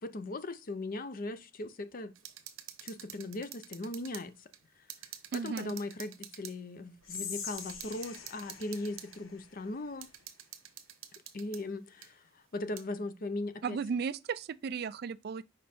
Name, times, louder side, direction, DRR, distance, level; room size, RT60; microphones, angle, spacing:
voice 1, 0.0-2.1 2.8-4.3 5.3-10.1 11.3-12.1 12.5-13.8, left 2 dB, 45° left, 0.6 m, -38 dB
sound 1, 2.2-4.3 4.5-4.6 4.9-6.6 7.1-7.2 7.6-9.2 10.0-11.6 12.0-12.1 12.8-12.9, right 11 dB, 85° right, 0.9 m, -48 dB
voice 2, 5.3-5.8 13.6-15.4, right 6 dB, 50° right, 0.3 m, -35 dB
Whispering, 7.0-10.2, left 6 dB, 85° left, 1.3 m, -44 dB
5.3 x 5.1 x 4.2 m
head